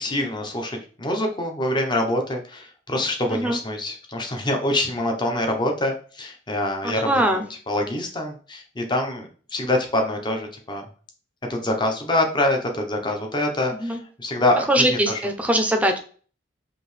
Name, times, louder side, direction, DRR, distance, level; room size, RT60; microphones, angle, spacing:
voice 1, 0.0-10.8 11.5-15.2, left 1 dB, 25° left, 3 dB, 0.8 m, -25 dB
voice 2, 6.8-7.5 13.8-14.0 14.7-16.0, right 1 dB, 10° right, 4 dB, 0.6 m, -21 dB
5.0 x 2.8 x 3.2 m, 0.40 s
head